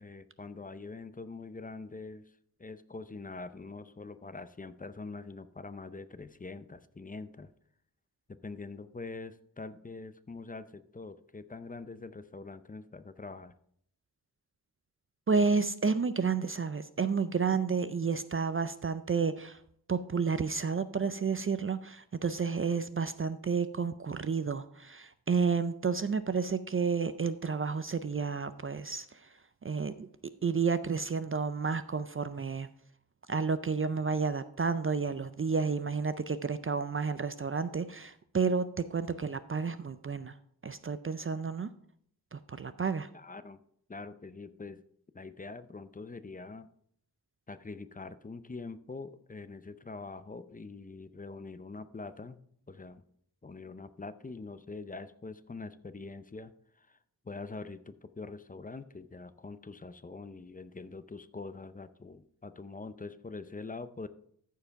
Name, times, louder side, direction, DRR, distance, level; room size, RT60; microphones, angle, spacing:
voice 1, 0.0-2.2 2.6-7.5 8.3-13.5 43.1-43.6 43.9-44.8 45.1-46.7 47.5-52.4 52.7-53.0 53.4-57.0 57.2-64.1, left 3 dB, 25° left, 12 dB, 0.5 m, -44 dB
voice 2, 15.3-19.6 19.9-29.3 29.6-30.1 30.4-32.7 33.3-40.3 40.6-41.7 42.3-43.1, right 5 dB, 35° right, 12 dB, 0.4 m, -31 dB
14.0 x 4.7 x 4.6 m, 0.67 s
wide cardioid pair, 90°, 37 cm